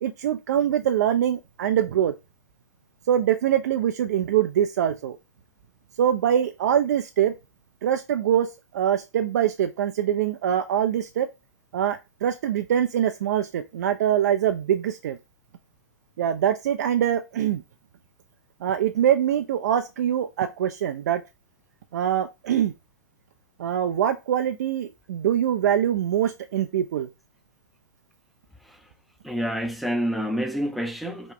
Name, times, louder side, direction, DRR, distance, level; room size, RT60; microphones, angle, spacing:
voice 1, 0.0-2.1 3.1-5.2 6.0-7.3 7.8-8.5 8.7-11.3 11.7-15.2 16.2-17.6 18.6-21.2 21.9-22.7 23.6-27.1, right 10 dB, 60° right, 0.3 m, -23 dB
voice 2, 29.2-31.3, equal, ahead, 0.4 m, -27 dB
2.9 x 2.2 x 3.6 m
figure-of-eight pair, 110°, 10 cm